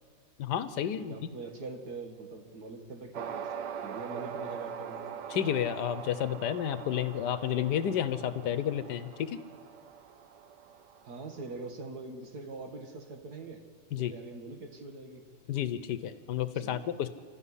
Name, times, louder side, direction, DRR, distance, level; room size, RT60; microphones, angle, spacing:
voice 1, 0.4-1.3 5.3-9.4 13.9-14.1 15.5-17.1, left 10 dB, 80° left, 12 dB, 1.5 m, -31 dB
voice 2, 1.0-3.5 3.8-5.0 11.1-13.7 14.0-15.3 16.5-16.9, right 3 dB, 70° right, 5 dB, 2.3 m, -43 dB
sound 1, 3.1-11.7, right 7 dB, 90° right, 1.5 m, -42 dB
28.0 x 13.5 x 10.0 m, 2.1 s
omnidirectional pair, 1.8 m